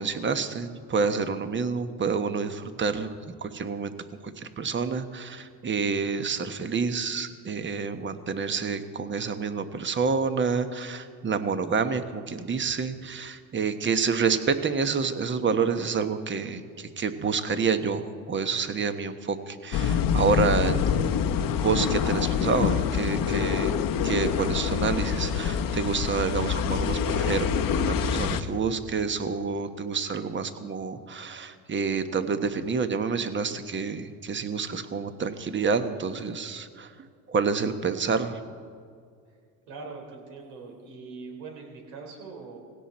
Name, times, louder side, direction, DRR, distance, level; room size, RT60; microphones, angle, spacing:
voice 1, 0.0-3.9 4.4-21.3 21.5-23.8 24.0-36.9 37.3-38.4, right 5 dB, 25° right, 10 dB, 1.1 m, -28 dB
sound 1, 19.7-28.4, left 7 dB, 40° left, 1.0 m, -26 dB
voice 2, 39.7-42.6, right 4 dB, 80° right, 1 dB, 3.8 m, -42 dB
18.5 x 17.0 x 4.3 m, 2.2 s
supercardioid pair, 95°, 50 cm